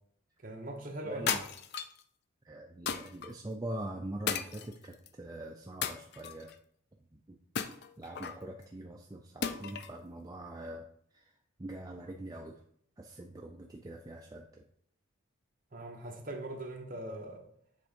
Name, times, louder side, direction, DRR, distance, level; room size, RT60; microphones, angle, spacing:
voice 1, 0.4-1.4 15.7-17.4, right 1 dB, 40° right, 1 dB, 1.1 m, -41 dB
voice 2, 1.0-1.4 2.4-6.5 7.1-7.4 8.0-10.9 11.1-11.3 11.6-12.6 13.0-14.6, right 1 dB, 15° right, 1 dB, 0.4 m, -43 dB
sound 1, 1.3-2.0 2.9-3.3 4.3-5.1 5.8-6.5 7.5-8.4 9.4-10.0, left 7 dB, 50° left, 0.4 m, -35 dB
7.7 x 3.5 x 5.2 m, 0.67 s
head